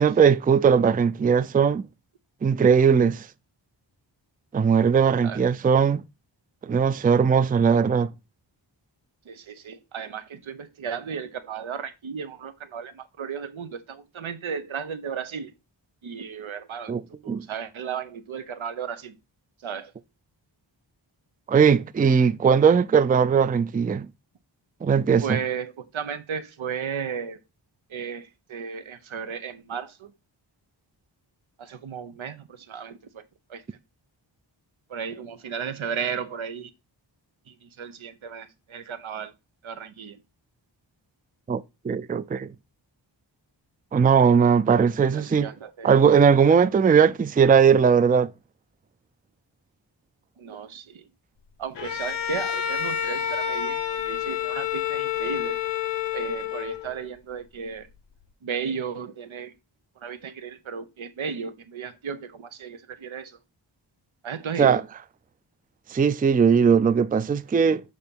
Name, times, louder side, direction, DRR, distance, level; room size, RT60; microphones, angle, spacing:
voice 1, 0.0-1.8 2.4-3.3 4.5-6.0 6.6-8.1 16.9-17.0 17.3-17.4 21.5-24.1 24.8-25.4 41.5-42.5 43.9-45.5 45.8-48.3 64.6-64.8 65.9-67.8, right 6 dB, 20° right, 0.4 m, -19 dB
voice 2, 9.2-15.5 16.0-16.9 17.2-19.2 19.6-19.9 25.2-27.4 27.9-30.1 31.6-33.6 34.9-36.7 37.5-39.3 39.6-40.2 45.1-45.9 46.4-46.7 50.4-51.1 51.6-55.6 56.1-57.9 58.4-59.5 60.0-63.4 64.2-64.9, right 7 dB, 85° right, 0.9 m, -34 dB
Bowed string instrument, 51.8-57.0, left 10 dB, 65° left, 0.8 m, -29 dB
6.5 x 2.9 x 5.2 m
wide cardioid pair, 60°, 46 cm